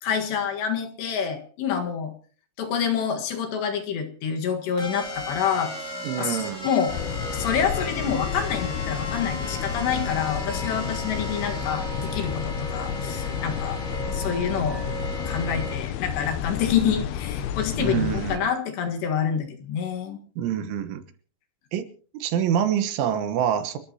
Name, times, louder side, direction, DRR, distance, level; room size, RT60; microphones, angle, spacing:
voice 1, 0.0-2.1 2.6-5.7 6.2-6.9 7.3-13.8 14.1-14.8 15.3-20.2, left 7 dB, 65° left, 4 dB, 3.6 m, -27 dB
sound 1, 4.8-15.7, right 1 dB, 15° left, 3.9 m, -35 dB
voice 2, 6.0-6.7 17.8-18.5 20.4-21.0 21.7-21.9 22.1-23.8, right 9 dB, 75° right, 9 dB, 3.6 m, -26 dB
sound 2, 6.9-18.4, left 10 dB, 90° left, 2.2 m, -31 dB
30.0 x 13.0 x 2.9 m, 0.42 s
omnidirectional pair, 5.7 m